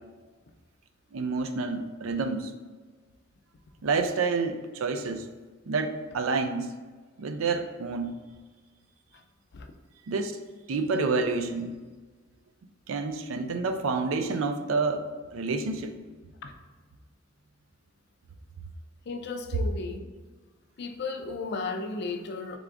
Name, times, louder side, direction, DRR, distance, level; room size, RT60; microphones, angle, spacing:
voice 1, 1.1-2.5 3.8-5.3 5.7-6.7 7.2-8.2 10.1-10.3 10.7-11.7 12.9-16.0, right 4 dB, 75° right, 6 dB, 0.4 m, -28 dB
voice 2, 19.1-20.1 20.8-22.6, left 3 dB, 55° left, 5 dB, 0.4 m, -34 dB
3.6 x 3.4 x 3.6 m, 1.4 s
head